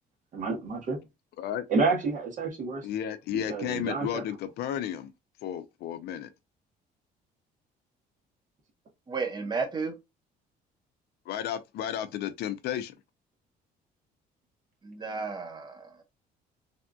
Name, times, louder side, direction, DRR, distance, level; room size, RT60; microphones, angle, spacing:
voice 1, 0.3-1.0 1.7-2.9 3.3-4.2, right 4 dB, 50° right, 1.4 m, -29 dB
voice 2, 2.8-5.1 5.4-6.3 11.3-12.9, left 10 dB, 70° left, 0.5 m, -33 dB
voice 3, 9.1-10.0 14.8-16.0, right 4 dB, 25° right, 1.0 m, -33 dB
3.4 x 2.5 x 2.3 m
cardioid pair, 110°, 17 cm